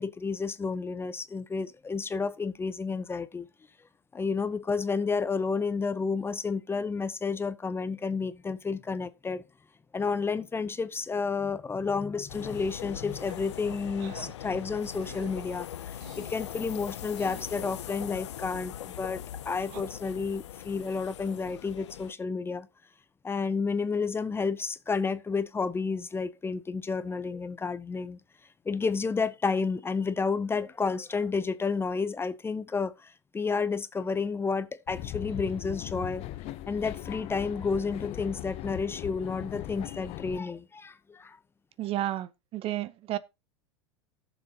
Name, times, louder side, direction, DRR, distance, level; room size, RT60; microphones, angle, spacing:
voice 1, 0.0-3.5 4.1-9.4 9.9-22.7 23.2-28.2 28.7-36.3 36.7-41.4, left 4 dB, 15° left, 0.7 m, -31 dB
sound 1, 12.3-22.1, left 11 dB, 80° left, 0.5 m, -41 dB
sound 2, 13.2-13.5 14.0-14.4 15.0-15.3 16.0-16.4 17.2-17.7 19.6-19.8, right 13 dB, 60° right, 1.1 m, -47 dB
sound 3, 34.9-40.4, left 15 dB, 45° left, 0.8 m, -39 dB
voice 2, 41.8-43.2, right 14 dB, 40° right, 0.7 m, -32 dB
17.5 x 7.0 x 2.8 m
hypercardioid pair, 95°, 15 cm